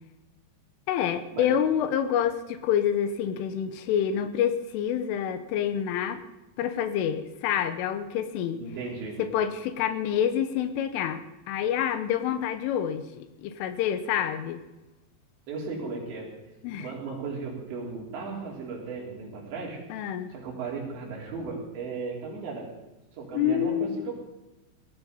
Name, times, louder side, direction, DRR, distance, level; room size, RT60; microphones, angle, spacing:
voice 1, 0.9-6.2 6.6-8.6 9.2-14.6 16.6-16.9 19.9-20.3 23.3-24.1, left 9 dB, 90° left, 10 dB, 3.5 m, -27 dB
voice 2, 8.6-9.2 15.5-16.3 16.8-19.8 20.3-22.8 23.1-24.1, right 4 dB, 65° right, -3 dB, 5.7 m, -36 dB
18.5 x 14.0 x 5.3 m, 1.0 s
omnidirectional pair, 5.6 m